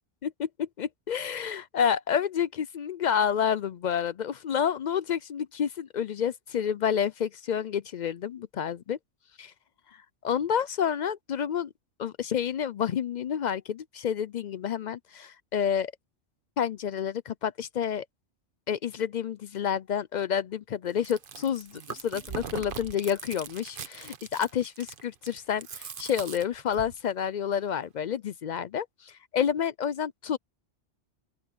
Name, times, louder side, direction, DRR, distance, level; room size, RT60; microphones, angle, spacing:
voice 1, 0.6-9.0 9.4-9.5 10.2-11.7 12.0-15.9 16.6-18.1 18.7-30.4, left 8 dB, 60° left, 0.4 m, -29 dB
Chewing mastication, 20.9-27.0, right 6 dB, 50° right, 1.0 m, -41 dB
open air
omnidirectional pair, 1.2 m